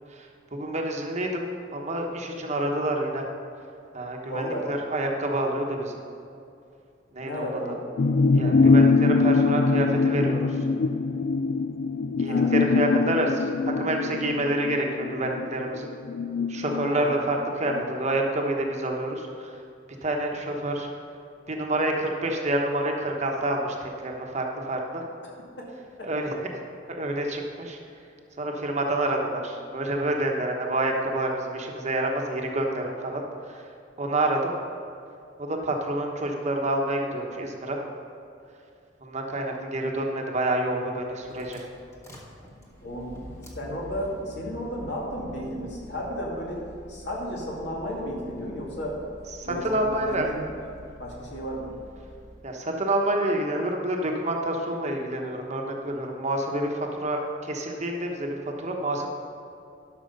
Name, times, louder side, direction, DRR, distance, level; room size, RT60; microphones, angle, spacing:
voice 1, 0.1-1.4 1.7-3.3 3.9-6.0 7.1-7.8 8.3-10.7 12.2-13.5 13.8-15.9 16.5-19.5 20.0-20.9 21.5-25.0 26.0-26.4 27.0-27.8 28.4-33.7 34.0-34.5 35.4-37.8 39.0-41.7 49.4-50.3 52.4-59.1, right 1 dB, 40° right, 1 dB, 1.1 m, -28 dB
voice 2, 4.3-4.7 7.2-7.8 12.3-12.5 16.9-17.1 42.8-46.6 46.9-49.0 49.4-50.5 51.0-51.7, equal, 65° left, -3 dB, 2.4 m, -33 dB
sound 1, 8.0-17.8 18.1-18.2, left 4 dB, 50° left, 0.3 m, -23 dB
sound 2, 41.0-52.5, equal, 15° left, 1.4 m, -47 dB
11.5 x 6.2 x 5.4 m, 2.5 s
head